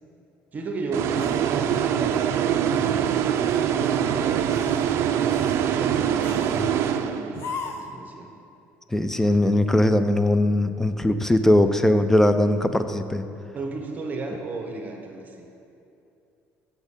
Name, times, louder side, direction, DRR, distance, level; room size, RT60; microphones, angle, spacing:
voice 1, 0.5-3.2 3.8-5.0 5.6-8.3 13.5-15.5, right 3 dB, 35° right, 2 dB, 0.9 m, -34 dB
sound 1, 0.9-7.6, right 9 dB, 60° right, 0.4 m, -24 dB
sound 2, 1.1-2.3 2.7-3.0 3.4-4.0 4.4-4.9 5.3-5.6 6.2-6.7 7.3-8.0, left 5 dB, 55° left, 0.7 m, -38 dB
voice 2, 8.9-13.2, left 1 dB, 5° left, 10 dB, 0.4 m, -20 dB
8.1 x 7.1 x 3.7 m, 2.7 s
cardioid pair, 105°, 5 cm